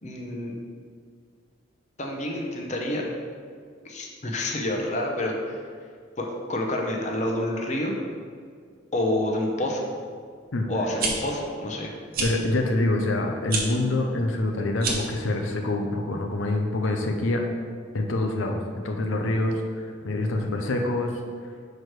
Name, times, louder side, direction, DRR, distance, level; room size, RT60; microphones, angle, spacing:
voice 1, 0.0-0.6 2.0-3.1 3.9-5.6 6.2-7.9 8.9-9.8 10.7-11.9, left 1 dB, 35° left, 0 dB, 0.8 m, -28 dB
sound 1, 10.8-11.1 12.1-12.3 13.4-13.6 14.7-15.1, right 4 dB, 45° right, 0.9 m, -27 dB
voice 2, 12.2-17.4 17.9-18.6 18.8-21.1, left 2 dB, 80° left, 3 dB, 0.6 m, -26 dB
6.2 x 4.7 x 4.6 m, 2.1 s
head